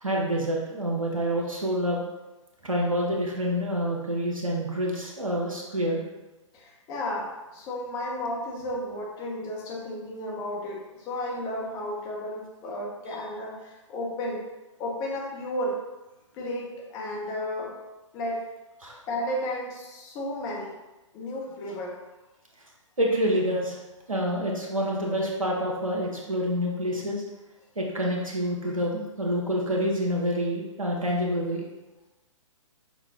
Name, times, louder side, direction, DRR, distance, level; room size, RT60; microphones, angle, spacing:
voice 1, 0.0-2.0 2.6-6.0 18.8-19.0 23.0-23.8 24.1-27.2 27.8-31.6, equal, 85° right, -2 dB, 1.1 m, -27 dB
voice 2, 6.5-14.5 14.8-15.8 16.3-17.7 18.1-18.5 19.1-20.8 21.1-22.0, left 1 dB, 20° left, -2 dB, 0.7 m, -33 dB
6.1 x 2.2 x 3.6 m, 1.1 s
figure-of-eight pair, 125°, 17 cm